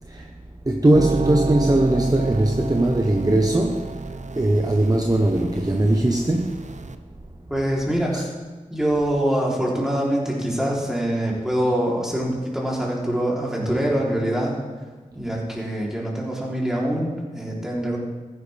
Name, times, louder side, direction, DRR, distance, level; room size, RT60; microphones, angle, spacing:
voice 1, 0.0-0.3 0.6-6.8 8.1-8.2, right 1 dB, 25° right, 0.9 m, -20 dB
sound 1, 0.9-6.9, right 3 dB, 60° right, 0.6 m, -29 dB
voice 2, 7.5-8.3 8.7-14.5 15.1-18.0, right 1 dB, 5° right, 3.4 m, -24 dB
15.0 x 10.5 x 3.5 m
wide cardioid pair, 55°, 14 cm